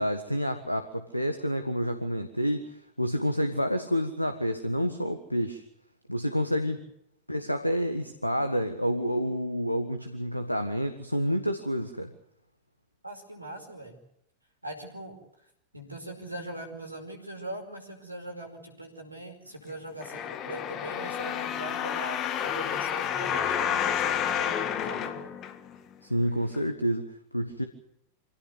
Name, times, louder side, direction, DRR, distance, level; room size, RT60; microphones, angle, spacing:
voice 1, 0.0-5.6 6.1-6.8 7.3-12.1 26.0-27.7, equal, 90° left, 9 dB, 1.5 m, -29 dB
voice 2, 13.0-14.0 14.6-15.2 15.7-25.3, right 1 dB, 85° right, 5 dB, 5.0 m, -41 dB
sound 1, 20.0-25.9 26.5-26.6, left 9 dB, 35° left, 2.0 m, -30 dB
25.5 x 16.5 x 8.1 m, 0.77 s
figure-of-eight pair, 90°, 0 cm